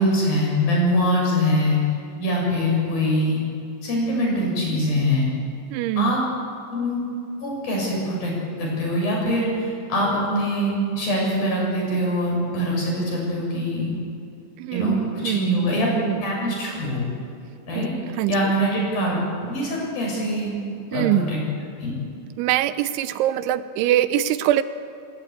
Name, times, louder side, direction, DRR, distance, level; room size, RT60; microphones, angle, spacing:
voice 1, 0.0-1.8 2.2-3.4 3.8-5.3 6.0-6.2 6.7-7.0 7.4-8.3 8.6-13.9 14.7-15.9 16.2-17.1 17.7-17.9 18.3-20.5 20.9-21.4 21.8-21.9, equal, 50° left, -2 dB, 8.6 m, -23 dB
voice 2, 5.7-6.2 14.6-15.5 16.0-16.2 17.8-17.9 18.2-18.3 20.9-21.3 22.4-24.6, right 13 dB, 90° right, 12 dB, 3.2 m, -23 dB
27.5 x 17.0 x 8.6 m, 2.5 s
omnidirectional pair, 5.3 m